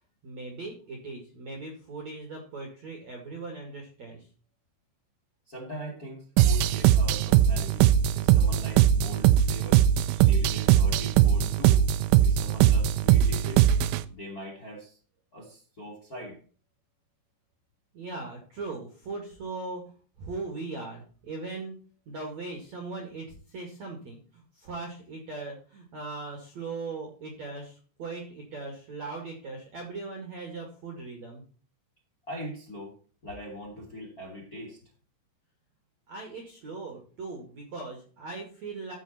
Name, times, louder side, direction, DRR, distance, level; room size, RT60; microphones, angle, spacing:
voice 1, 0.2-4.3 10.2-10.4 17.9-19.9 20.2-21.8 22.1-31.4 36.1-38.9, right 3 dB, 45° right, 2 dB, 2.4 m, -39 dB
voice 2, 5.5-7.9 8.1-9.8 10.2-11.8 12.2-13.7 14.1-15.0 15.3-16.4 32.3-32.9 33.2-34.8, equal, 25° left, -1 dB, 2.4 m, -41 dB
sound 1, 6.4-14.0, right 11 dB, 80° right, 3.1 m, -21 dB
14.0 x 6.9 x 4.3 m, 0.40 s
omnidirectional pair, 6.0 m